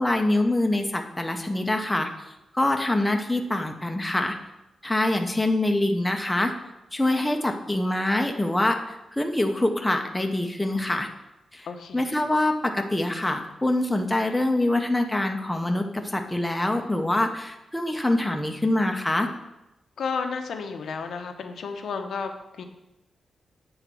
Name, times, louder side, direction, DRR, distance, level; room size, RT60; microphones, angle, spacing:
voice 1, 0.0-2.1 2.5-4.3 4.8-6.5 6.9-11.1 11.5-11.7 11.9-19.3, left 1 dB, 10° left, 3 dB, 0.7 m, -25 dB
voice 2, 11.7-12.0 20.0-22.6, left 5 dB, 80° left, 5 dB, 0.7 m, -32 dB
8.0 x 4.0 x 6.0 m, 0.93 s
wide cardioid pair, 130°, 0 cm